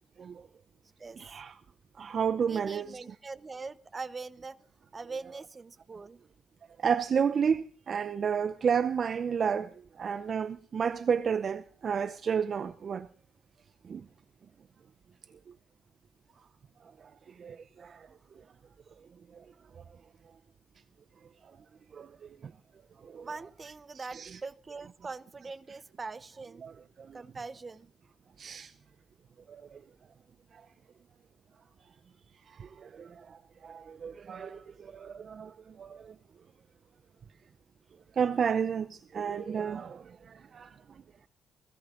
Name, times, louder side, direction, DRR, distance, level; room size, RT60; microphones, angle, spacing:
voice 1, 1.2-1.6 2.0-3.1 6.8-13.1 13.9-14.0 17.4-18.1 21.9-22.3 23.0-23.3 23.9-24.4 26.6-26.7 27.0-27.2 28.4-28.7 29.5-29.8 32.6-33.4 33.6-36.1 38.2-40.7, right 7 dB, 50° right, 0.6 m, -32 dB
voice 2, 2.4-4.6 4.9-6.2 18.1-18.2 23.1-26.7 27.1-27.9, right 4 dB, 30° right, 0.9 m, -42 dB
20.0 x 17.0 x 3.8 m
cardioid pair, 90°, 0 cm